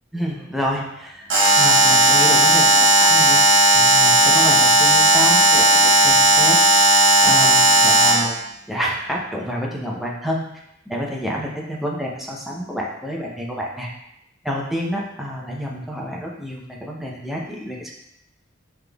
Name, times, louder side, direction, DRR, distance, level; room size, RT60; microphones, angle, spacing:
voice 1, 0.1-1.3 1.6-3.4 3.7-8.4 8.7-13.9 14.4-17.9, equal, ahead, -3 dB, 0.6 m, -28 dB
Alarm, 1.3-8.3, right 1 dB, 75° right, 1.0 m, -14 dB
5.7 x 3.4 x 2.3 m, 0.81 s
head